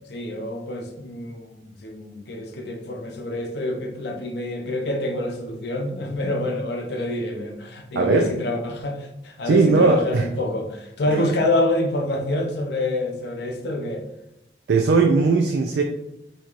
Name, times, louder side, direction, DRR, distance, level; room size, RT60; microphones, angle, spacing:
voice 1, 0.1-14.0, left 1 dB, 70° left, 0.6 m, -27 dB
voice 2, 8.0-8.3 9.4-10.3 11.1-11.2 14.7-15.8, right 4 dB, 75° right, 0.4 m, -18 dB
4.5 x 2.8 x 2.4 m
head